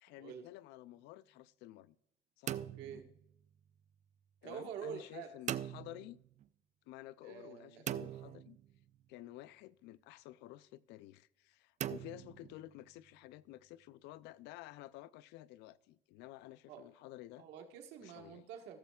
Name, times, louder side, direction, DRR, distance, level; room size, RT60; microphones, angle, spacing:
voice 1, 0.0-2.0 2.4-2.6 4.4-6.2 6.9-8.6 9.1-17.5 18.0-18.5, left 15 dB, 90° left, 0.4 m, -52 dB
sound 1, 2.5-3.8 5.5-6.5 7.9-9.1 11.8-13.0, right 10 dB, 45° right, 0.4 m, -42 dB
voice 2, 2.5-3.1 4.4-5.3 7.2-7.9 16.7-16.9 17.4-18.8, right 8 dB, 85° right, 1.4 m, -47 dB
16.0 x 7.3 x 2.3 m
cardioid pair, 110°, 17 cm